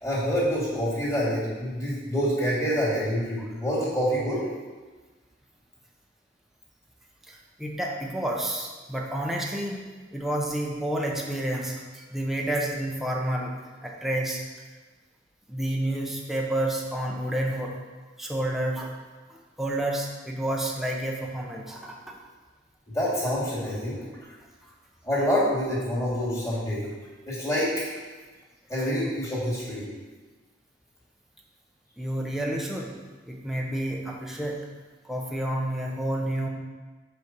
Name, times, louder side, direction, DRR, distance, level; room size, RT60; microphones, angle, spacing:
voice 1, 0.0-4.4 22.9-24.0 25.0-26.9 27.3-27.7 28.7-29.8, equal, 15° left, -8 dB, 2.6 m, -26 dB
voice 2, 7.3-9.8 10.1-13.5 13.8-14.4 15.5-17.7 18.2-18.9 19.3-22.1 32.0-32.9 33.3-34.7 35.0-36.5, right 1 dB, ahead, -2 dB, 0.8 m, -30 dB
5.8 x 5.2 x 6.0 m, 1.3 s
head